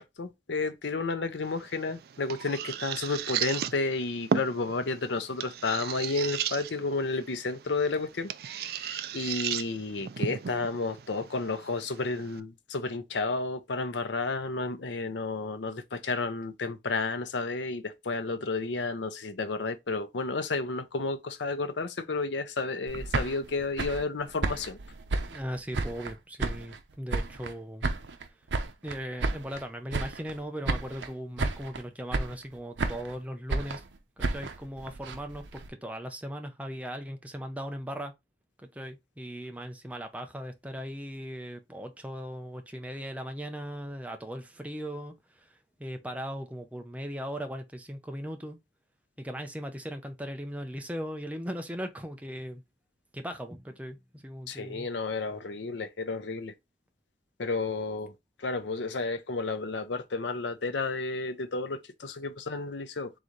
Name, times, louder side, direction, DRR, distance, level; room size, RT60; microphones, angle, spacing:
voice 1, 0.0-8.3 8.6-24.8 54.5-56.5 57.4-58.1 58.4-63.1, left 3 dB, 85° left, 0.7 m, -32 dB
sound 1, 1.4-12.4, right 8 dB, 60° right, 0.3 m, -36 dB
sound 2, 22.9-26.1 26.4-27.5 27.8-29.6 29.9-30.4 30.6-31.1 31.4-31.8 32.1-33.2 33.5-35.7, right 3 dB, 85° right, 0.7 m, -32 dB
voice 2, 25.3-27.9 28.8-33.8 34.2-38.1 38.6-45.5 45.8-48.6 49.2-52.6 53.1-54.9, equal, 10° right, 0.6 m, -38 dB
4.0 x 3.8 x 3.1 m
head